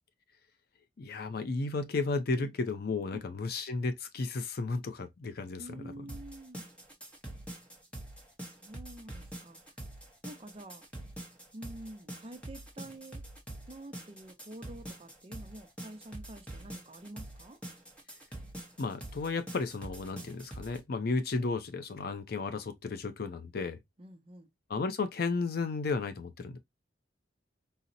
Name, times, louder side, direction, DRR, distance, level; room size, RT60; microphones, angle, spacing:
voice 1, 1.0-5.6 18.8-23.8 24.7-26.6, left 3 dB, 55° left, 0.5 m, -33 dB
voice 2, 3.1-3.5 5.6-6.7 8.4-9.6 10.2-10.8 11.5-13.2 13.7-17.6 24.0-24.5, right 1 dB, 30° right, 0.5 m, -48 dB
sound 1, 6.1-20.8, right 1 dB, 5° left, 0.7 m, -45 dB
4.0 x 2.0 x 2.5 m
head